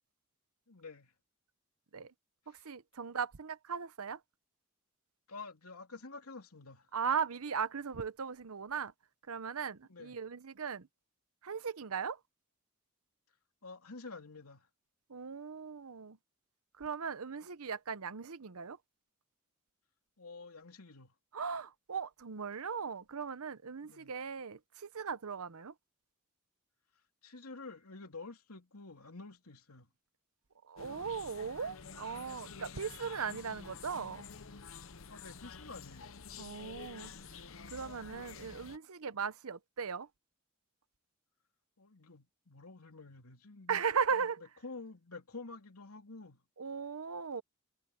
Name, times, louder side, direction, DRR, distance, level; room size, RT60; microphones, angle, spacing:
voice 1, 0.7-1.1 2.5-2.7 5.3-6.9 9.9-10.2 13.6-14.7 20.2-21.1 23.8-24.1 27.2-29.9 35.1-36.2 41.8-43.8 44.2-46.4, left 3 dB, 85° left, 3.0 m, -49 dB
voice 2, 2.5-4.2 6.9-8.9 9.3-10.9 11.4-12.2 15.1-16.2 16.8-18.8 21.3-25.7 30.7-34.2 36.4-37.4 37.7-40.1 43.7-44.4 46.6-47.4, right 6 dB, 80° right, 0.8 m, -38 dB
sound 1, 30.8-38.8, left 5 dB, 65° left, 0.9 m, -49 dB
head